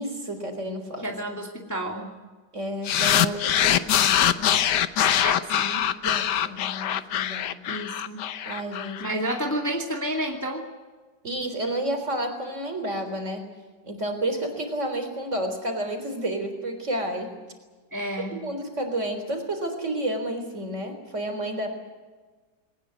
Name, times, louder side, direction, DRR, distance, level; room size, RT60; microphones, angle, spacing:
voice 1, 0.0-1.1 2.5-4.6 6.0-7.6 8.5-9.2 11.2-13.5 13.8-17.3 18.3-21.7, right 1 dB, 40° right, 6 dB, 4.2 m, -31 dB
voice 2, 1.0-2.2 5.2-5.9 7.7-8.2 9.0-10.6 17.9-18.4, right 1 dB, 10° left, 1 dB, 2.4 m, -30 dB
sound 1, 2.9-9.4, left 10 dB, 70° left, 1.4 m, -23 dB
21.0 x 19.0 x 9.4 m, 1.3 s
omnidirectional pair, 2.0 m